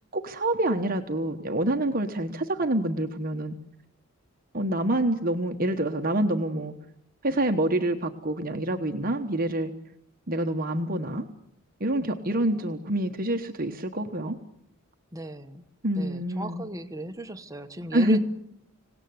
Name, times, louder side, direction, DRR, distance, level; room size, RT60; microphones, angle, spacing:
voice 1, 0.1-3.5 4.5-6.7 7.2-9.7 10.3-11.3 11.8-14.4 15.8-16.6 17.9-18.2, right 1 dB, 40° right, 5 dB, 1.2 m, -27 dB
voice 2, 15.1-15.7 15.9-18.2, right 2 dB, 15° right, 7 dB, 1.0 m, -36 dB
26.0 x 18.0 x 9.6 m, 0.79 s
head